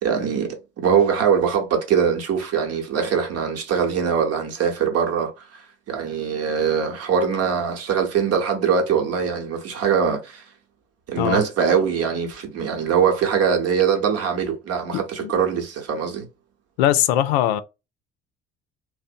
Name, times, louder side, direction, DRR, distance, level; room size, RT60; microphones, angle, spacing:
voice 1, 0.0-10.4 11.1-16.3, right 7 dB, 50° right, 1.0 m, -22 dB
voice 2, 14.9-15.3 16.8-17.6, left 12 dB, 80° left, 0.5 m, -21 dB
2.6 x 2.1 x 2.5 m
hypercardioid pair, 70°, 31 cm